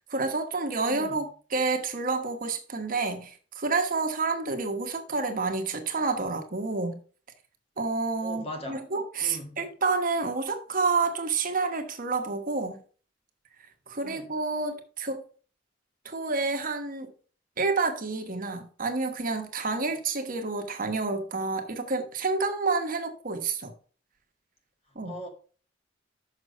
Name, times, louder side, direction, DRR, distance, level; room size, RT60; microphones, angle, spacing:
voice 1, 0.0-7.0 7.8-12.8 13.9-15.2 16.0-17.1 17.6-23.7 24.9-25.2, right 3 dB, 45° right, 1.1 m, -29 dB
voice 2, 0.9-1.2 8.2-8.8 9.2-9.6 14.0-14.3 25.1-25.3, left 1 dB, 30° left, 1.8 m, -39 dB
6.4 x 6.1 x 5.3 m
head